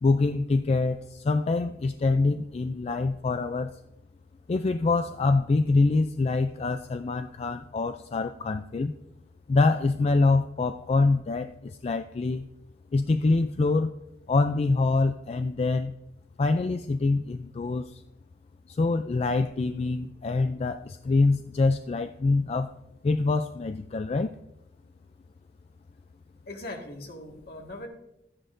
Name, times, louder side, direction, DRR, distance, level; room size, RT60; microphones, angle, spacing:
voice 1, 0.0-3.8 4.5-8.9 9.5-12.4 12.9-13.9 14.3-15.9 16.4-18.0 18.7-22.7 23.0-24.3, left 3 dB, 35° left, 9 dB, 0.3 m, -25 dB
voice 2, 26.5-27.9, left 1 dB, 60° left, 1 dB, 1.8 m, -40 dB
12.5 x 9.9 x 2.6 m, 0.83 s
head